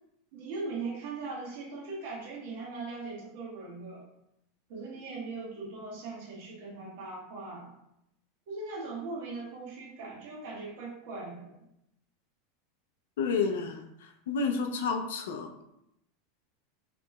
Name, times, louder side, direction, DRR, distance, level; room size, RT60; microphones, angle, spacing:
voice 1, 0.3-4.0 4.7-7.7 8.5-11.6, right 3 dB, 65° right, -2 dB, 1.4 m, -39 dB
voice 2, 13.2-15.7, left 5 dB, 85° left, 4 dB, 0.5 m, -31 dB
4.9 x 2.9 x 2.4 m, 0.80 s
supercardioid pair, 145°, 0 cm